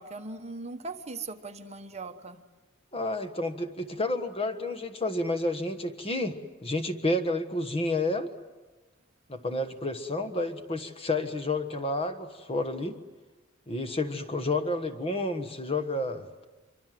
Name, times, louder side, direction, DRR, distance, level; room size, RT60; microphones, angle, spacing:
voice 1, 0.0-2.4, right 3 dB, 35° right, 6 dB, 1.2 m, -39 dB
voice 2, 2.9-8.3 9.3-13.0 13.7-16.5, left 2 dB, 30° left, 9 dB, 1.4 m, -30 dB
25.5 x 24.5 x 7.7 m, 1.2 s
head